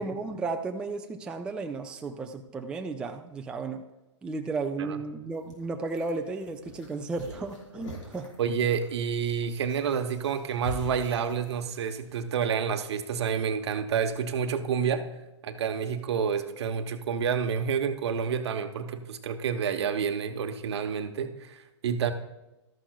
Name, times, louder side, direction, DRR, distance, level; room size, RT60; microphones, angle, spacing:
voice 1, 0.0-3.8 4.2-8.3, right 3 dB, 5° right, 4 dB, 0.4 m, -34 dB
sound 1, 5.3-12.2, equal, 75° left, 4.1 m, -44 dB
voice 2, 8.4-15.1 15.4-22.1, right 7 dB, 60° right, 8 dB, 0.9 m, -29 dB
13.0 x 11.5 x 2.3 m, 0.99 s
hypercardioid pair, 130°, 16 cm